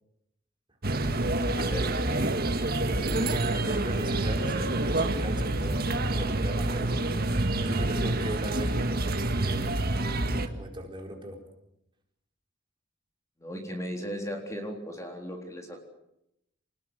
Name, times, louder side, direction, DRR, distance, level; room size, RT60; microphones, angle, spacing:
sound 1, 0.8-10.5, right 2 dB, 50° right, 1.9 m, -27 dB
voice 1, 1.4-2.3 13.4-15.8, equal, 15° left, 2 dB, 3.9 m, -37 dB
voice 2, 3.0-7.1 7.6-11.4, right 1 dB, 25° right, 2 dB, 4.4 m, -38 dB
27.0 x 20.0 x 8.1 m, 0.82 s
head